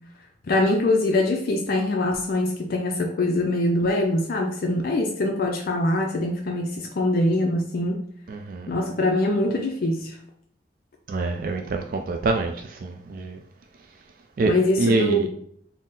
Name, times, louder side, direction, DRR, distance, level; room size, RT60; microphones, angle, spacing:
voice 1, 0.5-8.0 8.7-10.2 14.4-15.3, left 1 dB, 55° left, 2 dB, 0.4 m, -23 dB
voice 2, 8.3-8.7 11.1-13.4 14.4-14.5 14.8-15.3, right 3 dB, 50° right, 3 dB, 0.3 m, -25 dB
4.0 x 2.0 x 3.7 m, 0.63 s
head